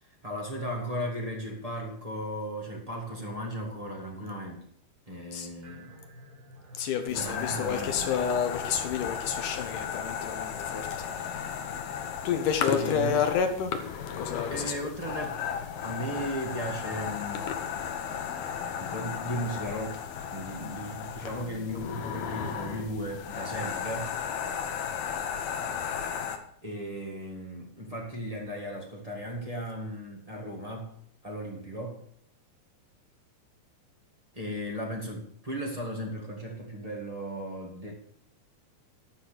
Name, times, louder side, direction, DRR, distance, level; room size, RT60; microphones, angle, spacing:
voice 1, 0.0-4.7 5.1-5.9 7.1-8.2 12.6-13.4 14.5-15.4 15.8-17.5 18.8-20.0 20.3-24.1 26.6-30.9 31.2-32.0 34.3-37.9, equal, 45° right, -1 dB, 0.4 m, -36 dB
sound 1, 5.6-21.8, left 1 dB, 75° right, 5.1 m, -51 dB
voice 2, 6.8-11.4 12.2-13.8 14.2-14.7 17.5-17.6, left 7 dB, 70° left, 7 dB, 2.3 m, -29 dB
sound 2, 7.1-26.4, left 8 dB, 90° left, 3.1 m, -35 dB
12.5 x 6.2 x 6.7 m, 0.67 s
omnidirectional pair, 4.4 m